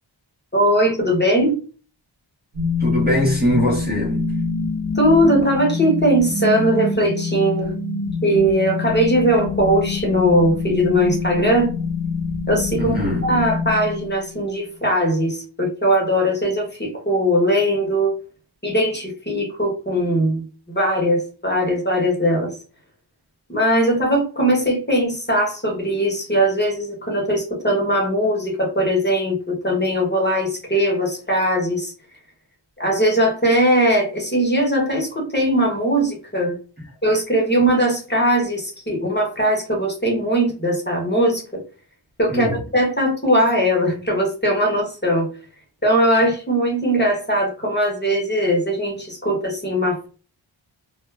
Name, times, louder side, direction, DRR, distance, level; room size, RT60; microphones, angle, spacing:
voice 1, 0.5-1.6 4.9-7.7 8.2-11.7 12.5-13.0 13.2-18.1 18.6-22.6 23.5-31.9 32.8-36.6 37.0-41.6 42.2-45.3 45.8-50.1, equal, 20° left, 0.9 m, -20 dB
sound 1, 2.5-14.5, left 4 dB, 70° right, 0.9 m, -26 dB
voice 2, 2.8-4.3 12.7-13.2 42.3-42.5, equal, 20° right, 0.8 m, -21 dB
2.2 x 2.1 x 3.2 m
wide cardioid pair, 50°, 49 cm